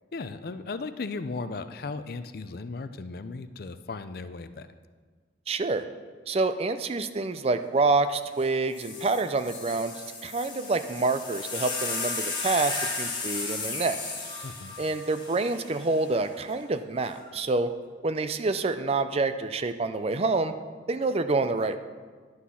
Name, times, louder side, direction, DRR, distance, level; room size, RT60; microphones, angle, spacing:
voice 1, 0.1-4.7 14.4-14.7, left 3 dB, 55° left, 11 dB, 0.5 m, -36 dB
voice 2, 5.5-5.8 6.3-14.0 14.8-17.7 18.0-20.5 20.9-21.8, right 3 dB, 35° right, 10 dB, 0.4 m, -27 dB
sound 1, 8.4-8.5 8.7-16.1 17.0-17.5, left 4 dB, 25° left, 1.7 m, -35 dB
11.0 x 6.2 x 5.7 m, 1.5 s
head